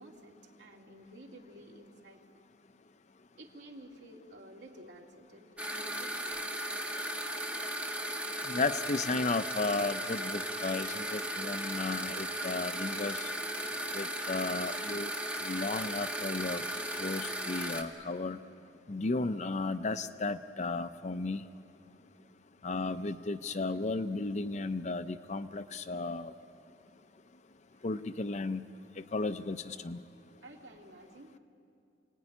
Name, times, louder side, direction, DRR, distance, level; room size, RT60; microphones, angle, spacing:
voice 1, 0.0-2.2 3.4-6.3 27.7-27.9 30.4-31.4, right 1 dB, 70° right, 0 dB, 2.7 m, -52 dB
sound 1, 5.6-17.8, right 1 dB, 5° right, 1.5 m, -36 dB
voice 2, 8.5-13.3 13.9-15.1 15.4-16.6 17.0-18.4 18.9-21.4 22.6-26.3 27.8-28.6 29.1-30.0, left 3 dB, 40° left, 11 dB, 0.6 m, -34 dB
27.5 x 18.0 x 10.0 m, 2.6 s
head